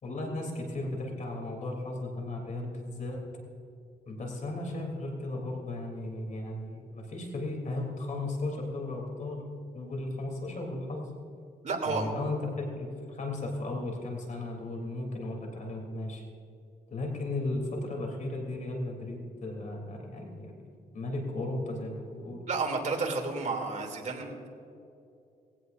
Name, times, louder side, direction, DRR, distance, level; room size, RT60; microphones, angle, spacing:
voice 1, 0.0-3.2 4.1-9.4 9.7-11.1 11.8-16.2 16.9-22.4, left 2 dB, 50° left, 1 dB, 3.4 m, -35 dB
voice 2, 11.6-12.1 22.5-24.5, right 3 dB, 50° right, 1 dB, 3.1 m, -31 dB
20.0 x 16.5 x 2.7 m, 2.7 s
cardioid pair, 90°, 16 cm